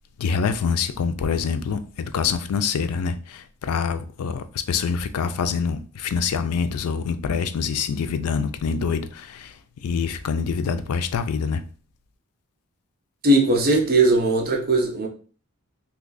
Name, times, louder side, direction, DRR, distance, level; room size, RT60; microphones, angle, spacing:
voice 1, 0.2-9.6 9.8-11.6, left 6 dB, 90° left, 0.4 m, -25 dB
voice 2, 13.2-15.1, right 2 dB, 45° right, 0.7 m, -19 dB
2.8 x 2.3 x 3.8 m
head